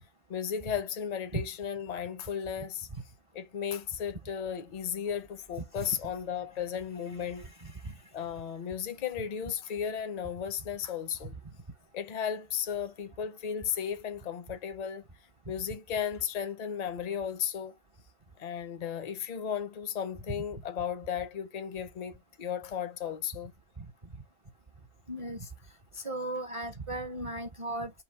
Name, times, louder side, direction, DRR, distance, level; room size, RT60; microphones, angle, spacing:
voice 1, 0.3-2.7 3.4-7.4 8.1-11.3 11.9-15.0 15.5-17.7 18.4-22.1 22.4-23.5, left 8 dB, 45° left, 0.5 m, -35 dB
voice 2, 7.1-8.0 11.2-11.3 23.8-23.9 25.1-25.5 25.9-27.9, right 1 dB, 35° right, 0.5 m, -37 dB
5.6 x 2.0 x 4.5 m
omnidirectional pair, 1.6 m